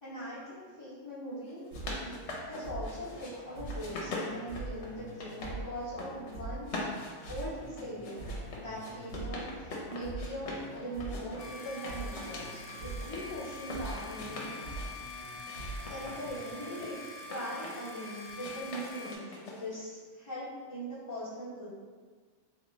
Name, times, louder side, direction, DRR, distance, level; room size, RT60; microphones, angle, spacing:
voice 1, 0.0-1.6 2.0-2.2 2.5-6.9 7.3-8.3 8.6-14.9 15.9-17.0 17.3-21.7, equal, 25° left, -12 dB, 0.9 m, -41 dB
sound 1, 1.5-3.3 3.6-5.5 5.8-6.3 6.6-10.7 11.0-13.2 13.6-14.9 15.4-17.9 18.3-19.9, left 2 dB, 70° left, 1.0 m, -42 dB
sound 2, 1.7-17.2, right 2 dB, 80° right, 1.4 m, -44 dB
sound 3, 11.4-19.1, left 2 dB, 85° left, 0.9 m, -45 dB
3.7 x 3.1 x 3.1 m, 1.5 s
omnidirectional pair, 1.3 m